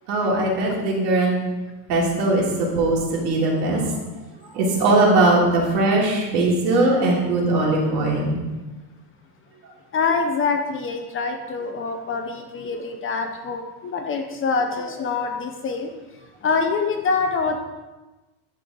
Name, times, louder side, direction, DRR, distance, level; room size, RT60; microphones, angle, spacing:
voice 1, 0.1-1.4 1.9-3.8 4.5-8.4, right 2 dB, 80° right, -3 dB, 3.1 m, -20 dB
voice 2, 9.9-15.9 16.4-17.6, left 4 dB, 25° left, 5 dB, 0.6 m, -25 dB
10.5 x 6.5 x 3.8 m, 1.1 s
cardioid pair, 150°, 50 cm